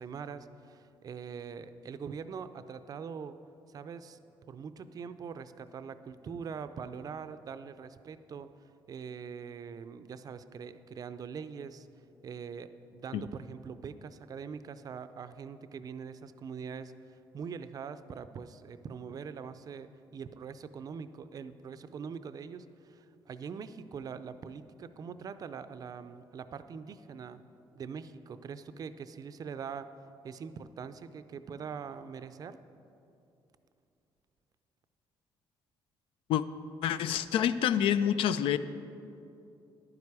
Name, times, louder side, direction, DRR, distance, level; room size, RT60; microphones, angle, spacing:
voice 1, 0.0-3.3 3.7-4.2 4.5-8.5 8.9-11.9 12.2-27.4 27.7-29.9 30.2-32.6, right 6 dB, 45° right, 12 dB, 0.4 m, -43 dB
voice 2, 36.8-38.6, left 9 dB, 85° left, 13 dB, 0.4 m, -27 dB
11.0 x 9.7 x 4.8 m, 2.7 s
cardioid pair, 120°, 9 cm